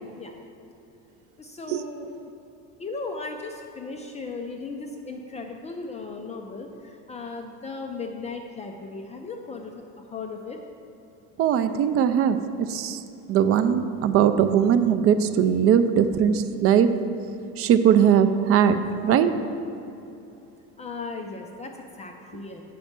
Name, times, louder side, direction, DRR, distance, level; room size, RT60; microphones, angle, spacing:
voice 1, 1.4-2.1 2.8-10.6 20.8-22.6, left 3 dB, 20° left, 3 dB, 0.4 m, -36 dB
voice 2, 11.4-12.4 12.7-13.0 13.3-16.9 17.6-19.3, right 8 dB, 40° right, 10 dB, 0.4 m, -20 dB
9.2 x 5.3 x 5.9 m, 2.9 s
cardioid pair, 150°, 36 cm